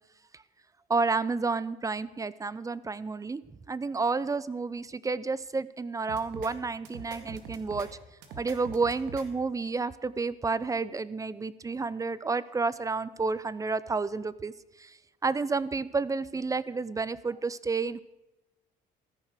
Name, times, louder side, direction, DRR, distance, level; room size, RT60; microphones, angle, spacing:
voice 1, 0.9-3.4 3.7-7.9 8.4-14.5 14.8-14.9 15.2-18.0, right 4 dB, 20° right, 18 dB, 0.5 m, -30 dB
sound 1, 6.1-6.5 6.9-7.9 8.2-9.3, right 5 dB, 90° right, 2.0 m, -43 dB
15.0 x 10.5 x 6.6 m, 0.99 s
cardioid pair, 110°, 17 cm